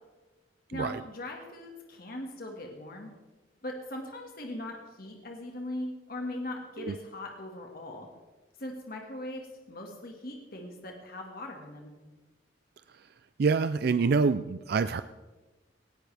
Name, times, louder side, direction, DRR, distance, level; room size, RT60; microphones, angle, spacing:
voice 1, 0.7-3.1 3.6-8.1 8.6-11.9, left 1 dB, 50° left, 2 dB, 1.9 m, -40 dB
voice 2, 13.4-15.0, right 4 dB, 55° right, 12 dB, 0.4 m, -26 dB
18.5 x 15.5 x 3.4 m, 1.2 s
head